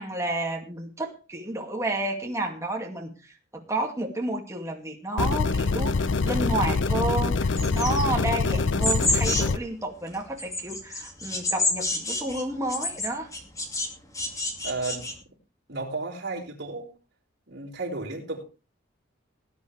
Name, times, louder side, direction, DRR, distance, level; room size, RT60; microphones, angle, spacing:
voice 1, 0.0-13.3, right 2 dB, 15° right, 2.3 m, -31 dB
sound 1, 5.2-9.6, left 4 dB, 70° left, 0.6 m, -25 dB
sound 2, 7.5-9.6 10.1-13.9 14.1-15.1, left 2 dB, 15° left, 2.3 m, -29 dB
voice 2, 14.6-15.1 15.7-16.9 17.5-18.4, right 3 dB, 60° right, 4.8 m, -33 dB
19.0 x 9.8 x 3.4 m
head